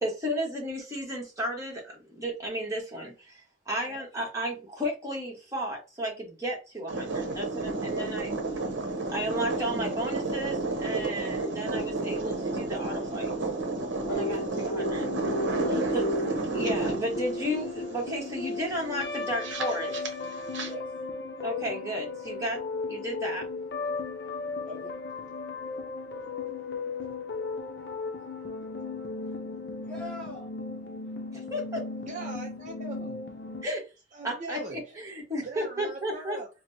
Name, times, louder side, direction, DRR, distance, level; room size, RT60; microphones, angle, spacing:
voice 1, 0.0-8.3 9.1-13.3 14.1-15.1 15.9-16.1 16.5-20.0 21.4-22.6 22.9-23.4 31.3-31.9 33.6-33.9 34.2-36.4, equal, 15° right, 1.2 m, -33 dB
sound 1, 6.9-20.7, right 2 dB, 80° right, 0.8 m, -32 dB
voice 2, 14.0-14.3 15.6-16.0 20.6-20.8 24.7-25.0 29.2-29.4 29.8-30.5, left 1 dB, 5° left, 0.7 m, -40 dB
sound 2, 14.1-33.6, left 3 dB, 60° left, 0.6 m, -35 dB
voice 3, 32.1-33.2 34.1-34.9 35.4-36.5, right 2 dB, 40° right, 0.5 m, -41 dB
4.3 x 2.1 x 2.6 m
head